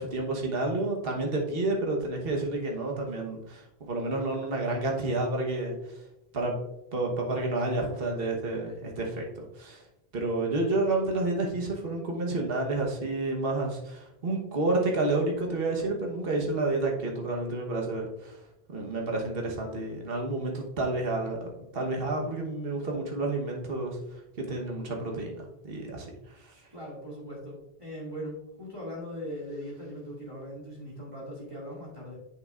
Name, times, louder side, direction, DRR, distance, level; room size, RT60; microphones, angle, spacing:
voice 1, 0.0-5.7 6.3-6.6 6.9-9.8 10.1-18.3 18.7-24.0 24.4-25.3 25.6-26.1, right 2 dB, 65° right, 0 dB, 1.4 m, -30 dB
voice 2, 26.7-32.2, equal, 30° right, -5 dB, 2.5 m, -40 dB
8.0 x 6.5 x 2.5 m, 0.88 s
omnidirectional pair, 1.1 m